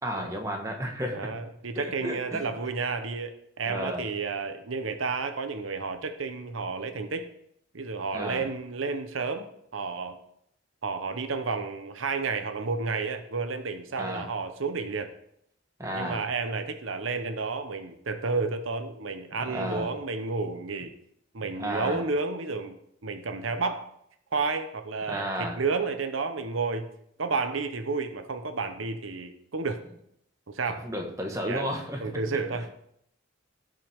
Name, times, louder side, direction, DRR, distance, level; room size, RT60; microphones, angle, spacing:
voice 1, 0.0-1.3 1.8-2.5 3.7-4.0 8.1-8.4 14.0-14.3 15.8-16.2 19.5-19.9 21.6-22.0 25.1-25.6 30.8-32.0, equal, 15° right, 1 dB, 1.4 m, -32 dB
voice 2, 1.1-7.3 7.7-9.5 9.7-10.2 10.8-15.1 15.9-20.9 21.3-22.8 23.0-23.9 24.3-26.9 27.2-29.8 30.5-30.9 31.4-31.7 32.0-32.7, right 4 dB, 85° right, 8 dB, 0.9 m, -31 dB
16.5 x 5.8 x 3.6 m, 0.73 s
head